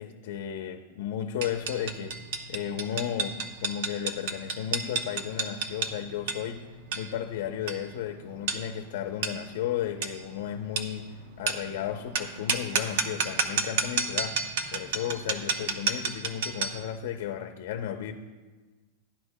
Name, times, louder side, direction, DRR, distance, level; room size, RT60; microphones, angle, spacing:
voice 1, 0.0-2.1 2.5-6.6 6.9-11.0 11.4-18.1, left 10 dB, 60° left, 6 dB, 0.7 m, -34 dB
sound 1, 1.4-16.9, right 5 dB, 60° right, 0.9 m, -32 dB
16.0 x 10.5 x 2.2 m, 1.3 s
supercardioid pair, 160°, 0 cm